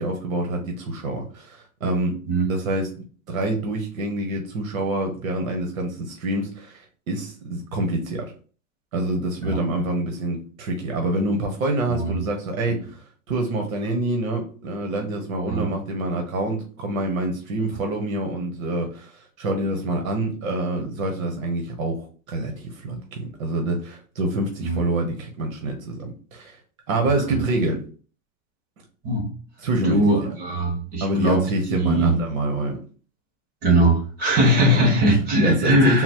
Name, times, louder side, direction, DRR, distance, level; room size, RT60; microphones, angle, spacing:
voice 1, 0.0-2.2 2.5-2.9 3.3-8.3 8.9-13.0 13.3-26.6 26.9-27.8 29.6-30.0 31.0-32.8 34.5-34.8 35.4-36.0, right 2 dB, 90° right, 3 dB, 1.1 m, -26 dB
voice 2, 11.9-12.2 12.7-12.8 15.5-15.7 24.6-24.8 27.3-27.4 29.0-29.3 29.8-31.4 31.7-32.1 33.6-36.0, right 1 dB, 25° right, -1 dB, 1.3 m, -20 dB
4.0 x 2.0 x 4.3 m, 0.39 s
supercardioid pair, 160°, 40 cm